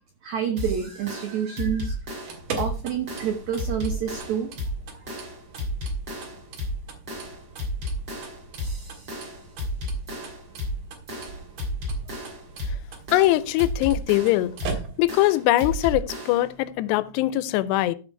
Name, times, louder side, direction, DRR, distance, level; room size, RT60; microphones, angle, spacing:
voice 1, 0.2-2.0 2.6-4.5, right 8 dB, 85° right, 1.6 m, -28 dB
sound 1, 0.6-16.5, equal, 30° right, 3.1 m, -33 dB
sound 2, 2.1-15.3, right 5 dB, 55° right, 2.7 m, -41 dB
voice 2, 13.1-14.6 15.0-18.0, left 16 dB, 85° left, 2.7 m, -22 dB
14.5 x 5.1 x 4.4 m
omnidirectional pair, 4.9 m